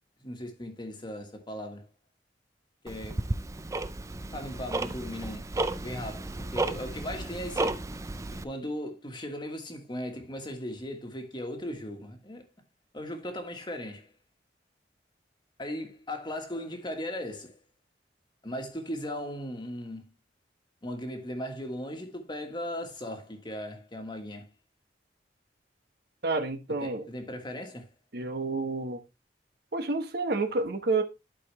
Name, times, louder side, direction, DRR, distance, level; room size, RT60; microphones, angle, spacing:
voice 1, 0.2-1.9 2.8-3.2 4.3-5.5 5.8-7.9 8.3-12.5 12.9-14.1 15.6-17.6 18.4-20.1 20.8-24.5 26.8-27.9, left 1 dB, 25° left, 1.5 m, -37 dB
Tick-tock, 2.9-8.4, right 2 dB, 20° right, 0.4 m, -33 dB
voice 2, 26.2-27.1 28.1-29.0 29.7-31.0, right 3 dB, 65° right, 1.1 m, -29 dB
11.5 x 4.7 x 3.1 m
head